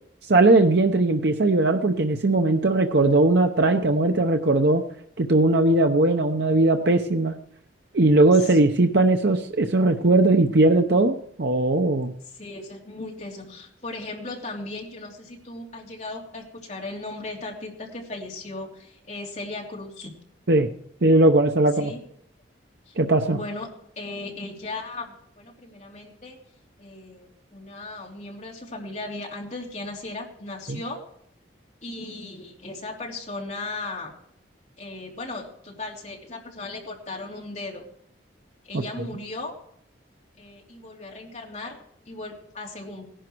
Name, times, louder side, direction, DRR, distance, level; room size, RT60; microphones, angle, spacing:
voice 1, 0.3-4.8 5.2-7.3 7.9-12.1 20.5-20.7 21.0-21.9 23.0-23.4 30.7-30.8, right 2 dB, 65° right, 5 dB, 0.8 m, -19 dB
voice 2, 12.3-20.1 21.8-22.0 22.9-23.0 23.3-23.7 24.0-26.4 26.8-31.0 31.8-34.1 34.8-37.8 38.6-39.5 40.4-41.8 42.1-43.1, left 2 dB, 40° left, -1 dB, 3.1 m, -37 dB
18.0 x 11.0 x 4.6 m, 0.67 s
head